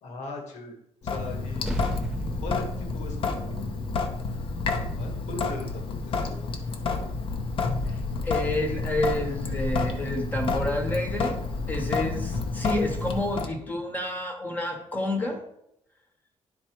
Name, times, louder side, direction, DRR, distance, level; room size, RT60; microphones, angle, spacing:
voice 1, 0.0-0.7 1.0-1.8 2.4-4.3 4.8-6.5 6.8-7.0, left 2 dB, 80° left, 3 dB, 1.7 m, -40 dB
Sink (filling or washing) / Drip, 1.0-13.5, left 4 dB, 50° left, 0.8 m, -30 dB
sound 1, 1.6-6.4, right 1 dB, 5° right, 0.8 m, -36 dB
voice 2, 7.9-11.4 11.7-15.4, left 1 dB, 15° left, 3 dB, 1.1 m, -29 dB
10.5 x 4.3 x 4.5 m, 0.78 s
cardioid pair, 175°, 12 cm